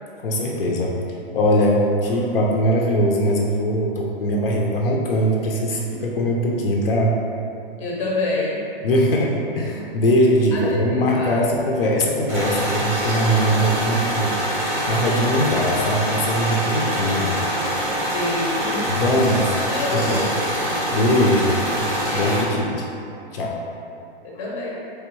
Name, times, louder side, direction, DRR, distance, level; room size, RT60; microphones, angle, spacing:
voice 1, 0.2-1.0 1.3-7.1 8.8-14.3 14.9-17.5 18.9-19.6 19.9-20.2 20.5-22.8 23.3-23.6, equal, 70° left, -1 dB, 0.6 m, -21 dB
voice 2, 7.8-8.6 10.5-11.5 16.7-17.2 18.1-18.9 19.7-20.3 22.1-22.5 24.4-24.8, left 2 dB, 35° left, -4 dB, 0.7 m, -28 dB
sound 1, 12.3-22.4, equal, 10° right, 0.7 m, -24 dB
3.4 x 3.4 x 3.1 m, 2.7 s
hypercardioid pair, 170°, 30 cm